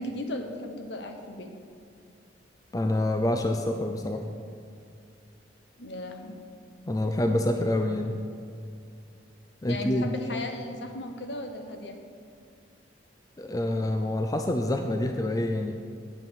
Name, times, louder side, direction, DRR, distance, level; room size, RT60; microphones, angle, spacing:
voice 1, 0.0-1.5 5.8-6.4 9.7-12.0, left 1 dB, 65° left, 4 dB, 0.9 m, -36 dB
voice 2, 2.7-4.2 6.9-8.1 9.6-10.1 13.4-15.7, left 1 dB, 20° left, 5 dB, 0.4 m, -27 dB
8.9 x 5.9 x 6.3 m, 2.4 s
head